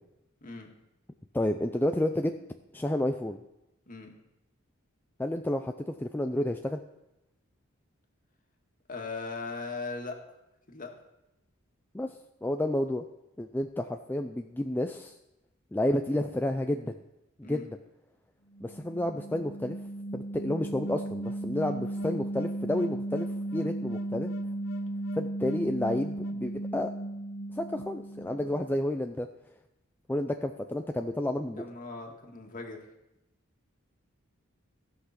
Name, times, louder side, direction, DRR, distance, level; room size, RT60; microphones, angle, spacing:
voice 1, 0.4-0.7 3.9-4.1 8.9-10.2 10.7-10.9 17.4-17.7 31.6-32.8, left 3 dB, 40° left, 2 dB, 1.8 m, -39 dB
voice 2, 1.3-2.3 2.7-3.4 5.2-6.8 11.9-12.1 12.4-13.1 13.4-15.1 15.7-16.9 17.4-17.8 18.6-19.8 20.1-24.3 25.2-26.9 27.6-29.3 30.1-31.6, left 1 dB, 10° left, 5 dB, 0.4 m, -30 dB
sound 1, 18.5-28.7, right 1 dB, 85° left, 1.2 m, -35 dB
16.0 x 5.9 x 5.8 m, 0.92 s
head